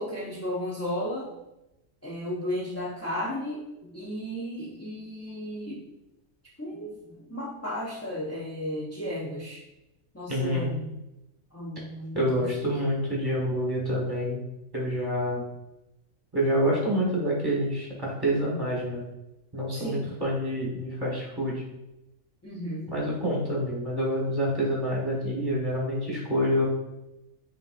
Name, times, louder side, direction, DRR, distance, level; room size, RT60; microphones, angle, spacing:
voice 1, 0.0-1.3 2.0-5.8 6.6-7.0 7.3-9.6 10.1-10.9 11.5-12.8 19.7-20.2 22.4-22.9 25.9-26.1, equal, 25° left, -6 dB, 0.3 m, -34 dB
voice 2, 10.3-10.7 12.1-14.4 14.7-15.4 16.3-19.0 19.5-21.6 22.9-26.7, equal, 20° right, -5 dB, 1.0 m, -27 dB
5.9 x 2.9 x 2.5 m, 0.93 s
omnidirectional pair, 1.4 m